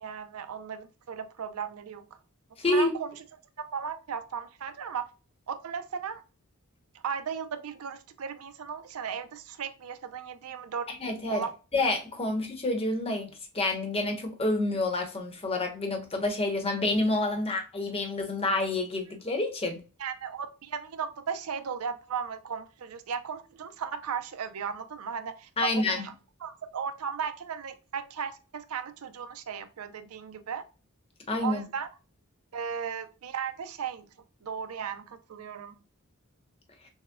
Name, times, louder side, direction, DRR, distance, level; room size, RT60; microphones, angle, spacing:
voice 1, 0.0-2.1 2.7-3.1 3.6-5.1 5.5-6.2 7.0-10.9 11.3-11.5 20.0-26.1 26.4-30.6 31.4-31.9 32.5-34.1 34.4-35.8, right 7 dB, 80° right, 0.5 m, -36 dB
voice 2, 2.6-2.9 10.9-11.4 11.7-19.8 25.6-26.0 31.3-31.6, left 2 dB, 25° left, 0.9 m, -28 dB
6.3 x 2.1 x 2.2 m
head